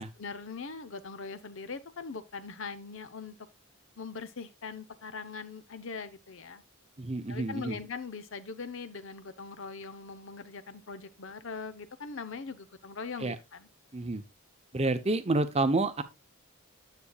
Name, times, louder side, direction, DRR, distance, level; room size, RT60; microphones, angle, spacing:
voice 1, 0.0-3.4 4.0-6.6 7.3-13.7, left 4 dB, 65° left, 0.8 m, -41 dB
voice 2, 7.0-7.8 13.2-13.4 13.9-14.2 14.7-16.0, right 2 dB, 30° right, 0.7 m, -29 dB
10.0 x 7.7 x 2.4 m
head